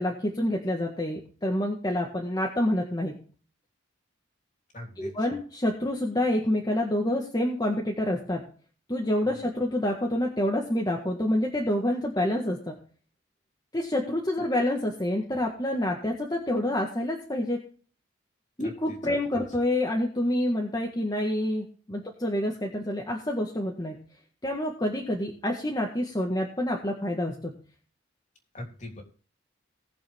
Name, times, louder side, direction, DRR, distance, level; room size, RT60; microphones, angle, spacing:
voice 1, 0.0-3.2 5.0-8.4 8.9-12.8 13.7-17.6 18.6-24.0 24.4-27.5, left 1 dB, 20° left, -1 dB, 1.7 m, -27 dB
voice 2, 4.7-5.1 18.6-18.7 19.1-19.2 28.5-29.0, left 1 dB, 40° left, 2 dB, 3.2 m, -40 dB
19.0 x 7.0 x 3.6 m, 0.41 s
head